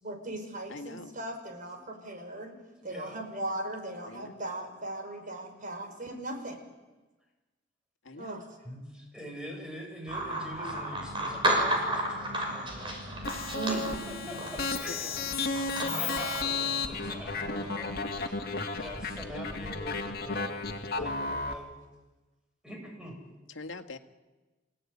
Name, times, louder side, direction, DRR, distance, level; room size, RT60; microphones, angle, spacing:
voice 1, 0.0-2.6 2.8-6.6 8.2-8.4 13.5-13.8 15.8-16.2, right 2 dB, 45° right, 5 dB, 5.2 m, -38 dB
voice 2, 0.7-1.1 4.1-4.4 8.0-8.4 14.6-14.7 23.5-24.0, left 3 dB, 80° left, 6 dB, 1.9 m, -43 dB
voice 3, 2.8-3.2 8.6-12.9 13.7-13.8 14.1-15.1 15.5-17.9 18.7-21.7 22.6-23.1, equal, 5° right, 0 dB, 7.5 m, -44 dB
sound 1, 10.1-18.0, right 1 dB, 25° right, 6.4 m, -33 dB
sound 2, 13.2-21.5, left 4 dB, 55° left, 2.4 m, -33 dB
27.5 x 17.5 x 9.8 m, 1.2 s
head